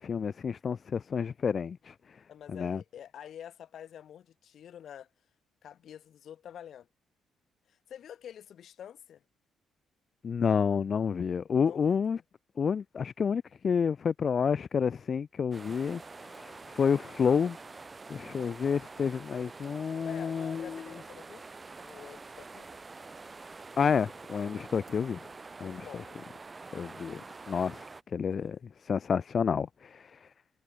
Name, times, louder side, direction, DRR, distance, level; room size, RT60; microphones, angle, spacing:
voice 1, 0.0-1.9 2.5-2.8 10.2-12.2 12.6-17.6 18.1-20.8 23.8-25.2 25.6-25.9 26.7-27.2 27.5-27.9 28.1-28.6 28.8-30.2, left 6 dB, 45° left, 0.4 m, -29 dB
voice 2, 2.3-5.1 5.6-6.9 7.7-9.2 11.6-12.2 20.0-21.5 21.8-22.7 25.6-26.2 28.3-28.6, left 9 dB, 65° left, 5.9 m, -48 dB
sound 1, 15.5-28.0, right 3 dB, 25° right, 2.0 m, -47 dB
cardioid pair, 90°, 0 cm